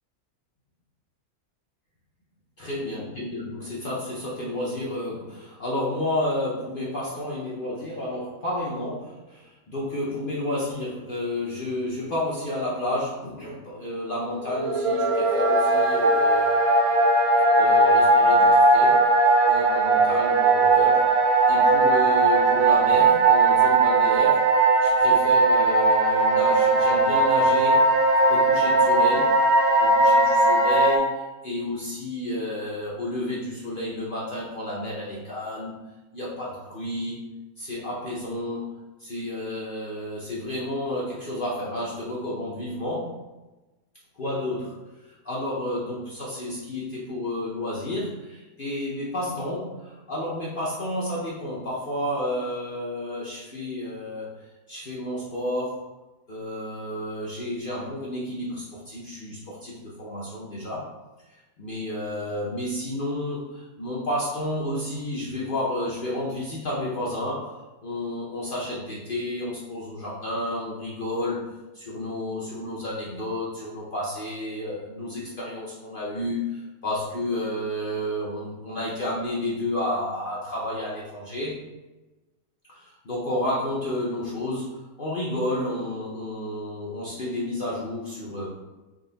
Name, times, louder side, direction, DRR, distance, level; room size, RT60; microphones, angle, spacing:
voice 1, 2.6-16.6 17.5-19.0 19.4-21.0 21.5-27.9 28.3-29.3 29.8-35.8 36.1-37.3 37.6-38.7 39.0-43.1 44.2-44.7 45.2-55.8 56.3-60.9 61.6-71.5 71.7-81.6 82.7-88.5, left 1 dB, 50° left, -6 dB, 0.6 m, -31 dB
sound 1, 14.5-31.0, right 2 dB, 65° right, 0.6 m, -19 dB
3.8 x 2.4 x 3.8 m, 1.1 s
omnidirectional pair, 1.7 m